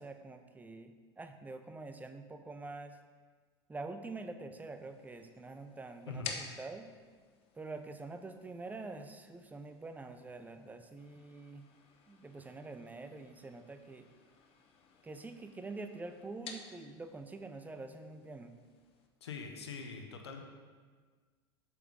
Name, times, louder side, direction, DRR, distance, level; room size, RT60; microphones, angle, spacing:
voice 1, 0.0-3.0 3.7-6.9 7.5-11.6 12.1-14.1 15.0-18.5, right 3 dB, 10° right, 8 dB, 0.6 m, -46 dB
sound 1, 4.7-19.1, left 5 dB, 45° left, 1.0 m, -53 dB
voice 2, 19.2-20.4, left 4 dB, 85° left, 4 dB, 0.9 m, -43 dB
7.6 x 5.7 x 3.8 m, 1.5 s
hypercardioid pair, 85°, 14 cm